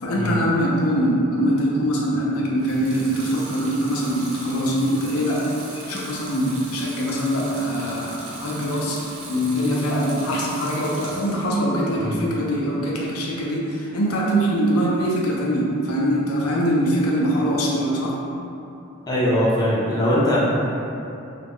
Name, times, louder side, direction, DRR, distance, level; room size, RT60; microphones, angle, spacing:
voice 1, 0.0-5.5 5.7-9.0 9.3-18.2, equal, 85° left, -4 dB, 0.5 m, -23 dB
Water tap faucet / Sink (filling or washing) / Liquid, 2.6-11.5 11.9-12.6, right 2 dB, 70° right, 0.5 m, -38 dB
voice 2, 19.0-20.4, equal, 20° left, -7 dB, 0.4 m, -21 dB
2.3 x 2.1 x 3.5 m, 2.7 s
head